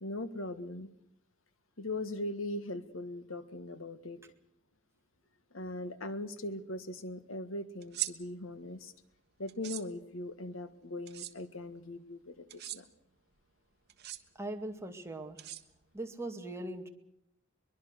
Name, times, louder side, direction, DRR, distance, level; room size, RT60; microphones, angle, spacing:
voice 1, 0.0-0.9 1.8-4.2 5.5-8.9 9.4-12.4 12.7-12.9, left 1 dB, 85° left, 11 dB, 1.7 m, -40 dB
sound 1, 7.8-8.1 9.5-9.8 11.1-11.3 12.5-12.8 13.9-14.2 15.4-16.0, right 13 dB, 55° right, 1.4 m, -39 dB
voice 2, 14.3-15.4 15.9-16.9, right 1 dB, 15° right, 4 dB, 2.1 m, -40 dB
23.0 x 22.5 x 6.7 m, 0.78 s
head